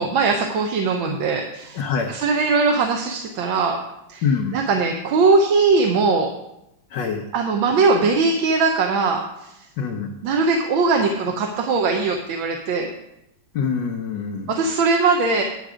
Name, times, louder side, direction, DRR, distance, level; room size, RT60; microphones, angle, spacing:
voice 1, 0.0-1.8 2.1-3.8 4.1-4.2 4.5-6.3 7.3-9.7 10.2-12.9 14.5-15.4, right 4 dB, 90° right, 3 dB, 1.6 m, -20 dB
voice 2, 1.7-2.2 4.2-4.6 6.9-7.2 9.8-10.1 13.5-14.5, left 6 dB, 70° left, 1 dB, 1.5 m, -25 dB
10.5 x 7.3 x 4.9 m, 0.85 s
omnidirectional pair, 2.1 m